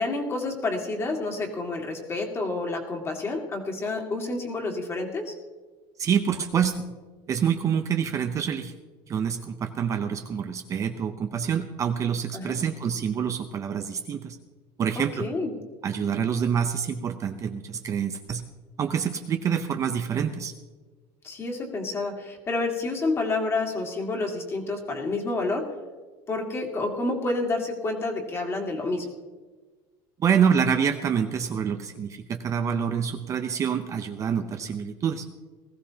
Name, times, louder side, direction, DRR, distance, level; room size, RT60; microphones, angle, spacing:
voice 1, 0.0-5.3 12.3-12.6 15.0-15.5 21.2-25.7 26.3-29.1, left 2 dB, 25° left, 2 dB, 2.0 m, -29 dB
voice 2, 6.0-6.8 7.3-8.7 9.1-14.4 14.8-15.3 15.8-18.4 18.8-20.5 30.2-35.3, right 7 dB, 30° right, 7 dB, 0.6 m, -26 dB
19.5 x 14.5 x 2.8 m, 1.4 s
cardioid pair, 150°, 11 cm